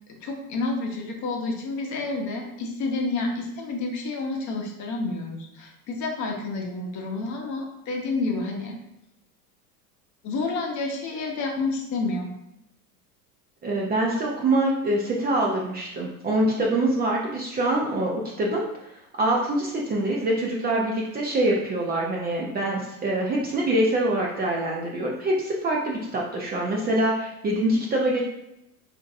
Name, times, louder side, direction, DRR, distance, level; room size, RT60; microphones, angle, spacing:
voice 1, 0.2-8.8 10.2-12.3, left 3 dB, 40° left, 1 dB, 0.8 m, -29 dB
voice 2, 13.6-18.9 19.2-28.2, right 1 dB, 20° right, -2 dB, 0.5 m, -25 dB
3.7 x 2.6 x 2.5 m, 0.84 s
hypercardioid pair, 90°, 46 cm